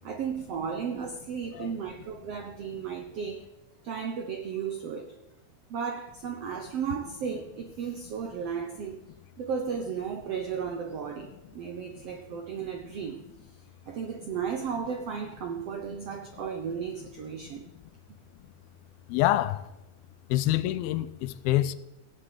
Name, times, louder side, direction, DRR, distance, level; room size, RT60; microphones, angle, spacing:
voice 1, 0.0-3.4 3.8-5.1 5.7-9.0 9.4-13.2 13.9-17.7, right 6 dB, 85° right, 1.3 m, -34 dB
voice 2, 19.1-19.6 20.3-21.8, left 14 dB, 85° left, 2.5 m, -26 dB
17.5 x 7.8 x 8.5 m
omnidirectional pair, 4.4 m